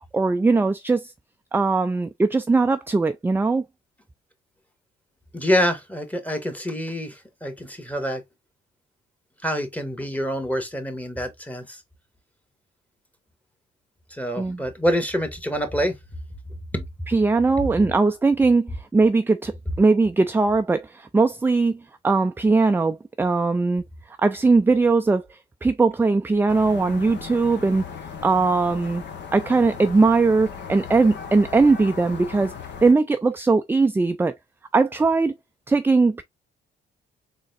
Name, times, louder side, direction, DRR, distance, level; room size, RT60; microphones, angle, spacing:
voice 1, 0.1-1.1 1.5-3.6 14.4-14.6 17.1-19.5 19.8-23.8 24.2-27.8 28.2-29.0 29.3-32.5 32.8-34.3 34.7-35.3 35.7-36.2, right 3 dB, 10° right, 0.3 m, -20 dB
voice 2, 5.3-8.2 9.4-11.8 14.1-15.9 16.7-16.8, equal, 5° left, 1.4 m, -26 dB
sound 1, 26.5-32.9, left 6 dB, 65° left, 1.2 m, -37 dB
4.0 x 3.7 x 2.5 m
cardioid pair, 90°, 20 cm